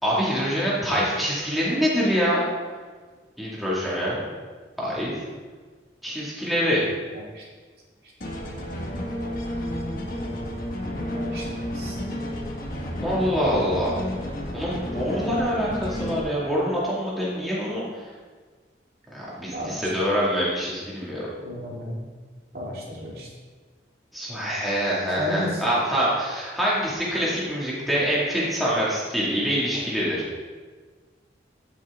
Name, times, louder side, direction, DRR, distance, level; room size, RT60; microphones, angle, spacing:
voice 1, 0.0-2.4 3.4-4.3 4.8-5.1 6.0-6.8 13.0-14.0 14.5-17.8 19.1-21.2 24.1-30.2, equal, ahead, -8 dB, 2.0 m, -25 dB
sound 1, 8.2-16.2, left 1 dB, 50° left, 1.3 m, -31 dB
voice 2, 19.5-19.9 21.4-22.0 22.5-23.3 25.2-25.6, left 1 dB, 55° right, -5 dB, 2.6 m, -32 dB
15.0 x 5.9 x 3.5 m, 1.5 s
head